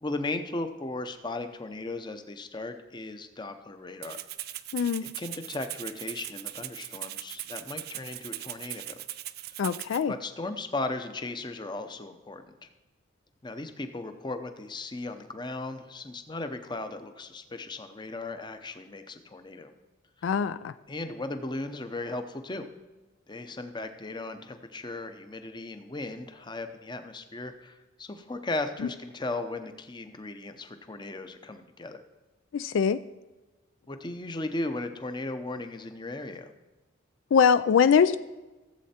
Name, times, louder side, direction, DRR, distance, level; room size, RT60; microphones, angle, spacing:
voice 1, 0.0-4.2 5.0-9.0 10.1-12.7 13.4-19.7 20.2-20.4 20.9-22.7 23.3-32.0 33.9-36.5, left 2 dB, 25° left, 8 dB, 0.7 m, -36 dB
Rattle (instrument), 4.0-10.0, right 14 dB, 50° right, 0.4 m, -39 dB
voice 2, 4.7-5.0 9.6-10.1 20.2-20.7 32.5-33.0 37.3-38.2, left 6 dB, 75° left, 13 dB, 0.3 m, -22 dB
14.5 x 7.7 x 4.3 m, 1.2 s
head